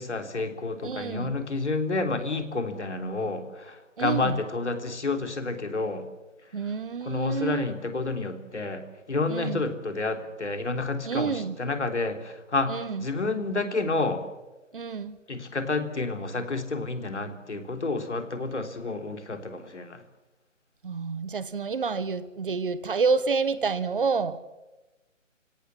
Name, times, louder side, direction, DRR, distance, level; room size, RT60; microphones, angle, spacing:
voice 1, 0.0-6.0 6.6-6.7 7.0-14.2 15.3-20.0, left 3 dB, 65° left, 3.5 m, -30 dB
voice 2, 0.8-1.4 4.0-4.4 6.5-7.7 9.3-9.7 11.0-11.6 12.7-13.0 14.7-15.2 20.8-24.4, right 5 dB, 45° right, 1.3 m, -28 dB
29.0 x 17.0 x 8.6 m
figure-of-eight pair, 150°, 38 cm